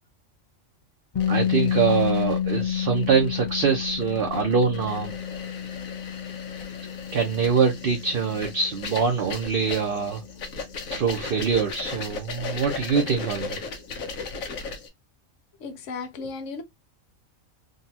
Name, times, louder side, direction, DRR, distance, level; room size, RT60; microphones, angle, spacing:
sound 1, 1.1-13.0, left 9 dB, 35° left, 0.6 m, -31 dB
sound 2, 1.2-14.9, left 4 dB, 80° left, 1.3 m, -37 dB
voice 1, 1.3-5.1 7.1-10.2 10.9-13.6, right 6 dB, 50° right, 0.8 m, -24 dB
voice 2, 15.6-16.6, left 4 dB, 65° left, 1.1 m, -35 dB
3.9 x 2.3 x 2.7 m
omnidirectional pair, 1.4 m